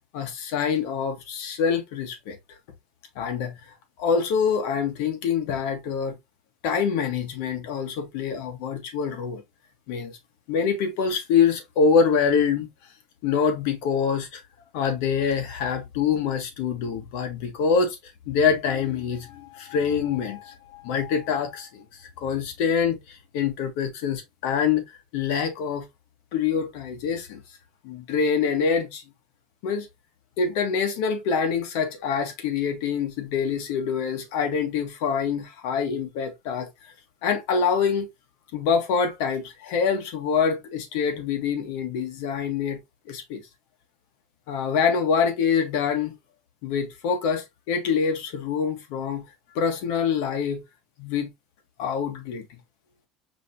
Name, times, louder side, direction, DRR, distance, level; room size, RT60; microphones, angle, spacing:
voice 1, 0.1-2.4 3.1-3.5 4.0-6.2 6.6-9.4 9.9-10.1 10.5-12.7 13.2-14.4 14.7-18.0 18.3-24.8 25.1-25.9 26.3-27.4 27.8-29.0 29.6-29.9 30.4-36.7 37.2-38.1 38.5-42.8 43.1-43.4 44.5-46.1 46.6-49.2 49.5-50.6 51.0-51.3 51.8-52.4, left 6 dB, 75° left, 1.6 m, -25 dB
5.1 x 3.5 x 3.0 m
cardioid pair, 145°, 0 cm